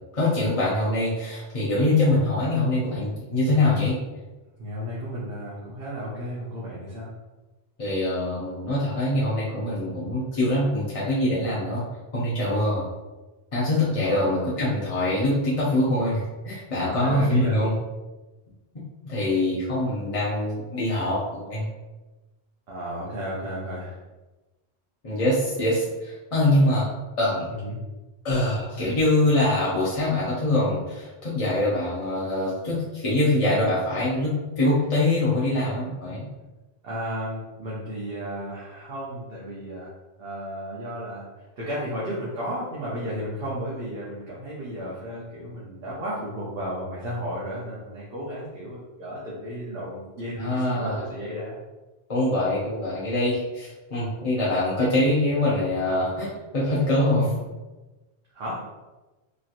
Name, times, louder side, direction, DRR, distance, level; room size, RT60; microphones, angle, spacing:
voice 1, 0.1-4.0 7.8-11.8 12.1-12.9 13.5-17.7 19.0-21.7 25.0-26.9 27.2-27.5 28.2-36.3 50.3-51.0 52.1-56.3 56.5-57.3, left 1 dB, 40° left, -8 dB, 0.6 m, -24 dB
voice 2, 3.5-3.8 4.6-7.1 12.5-12.8 14.0-14.3 16.7-17.6 22.7-24.0 27.5-27.8 36.8-39.9 40.2-41.3 41.6-51.6 58.3-58.6, equal, 60° right, -6 dB, 0.9 m, -33 dB
3.1 x 2.8 x 2.4 m, 1.1 s
omnidirectional pair, 1.2 m